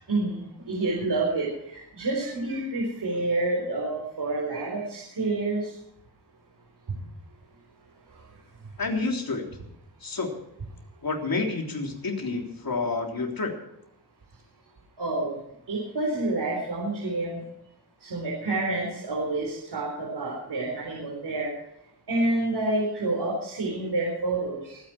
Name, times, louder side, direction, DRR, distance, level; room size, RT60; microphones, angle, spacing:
voice 1, 0.1-5.7 15.0-15.3 15.7-17.4 18.0-21.5 22.1-24.8, right 2 dB, 90° right, -2 dB, 4.2 m, -28 dB
voice 2, 8.8-9.4 10.0-10.3 11.0-13.5, left 3 dB, 60° left, 1 dB, 3.5 m, -29 dB
23.5 x 9.9 x 4.5 m, 0.76 s
wide cardioid pair, 85°, 39 cm